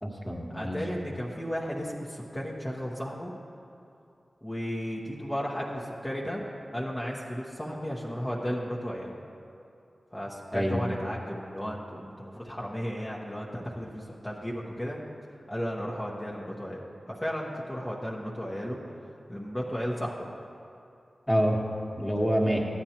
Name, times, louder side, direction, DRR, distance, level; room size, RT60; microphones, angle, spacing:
voice 1, 0.0-0.8 10.5-10.8 21.3-21.6 22.0-22.6, equal, 5° left, -1 dB, 1.4 m, -26 dB
voice 2, 0.5-3.3 4.4-6.4 6.7-9.1 10.1-15.0 15.5-18.8 19.3-20.3, equal, 25° left, -4 dB, 1.0 m, -34 dB
13.0 x 9.1 x 2.9 m, 2.6 s
cardioid pair, 40°, 0 cm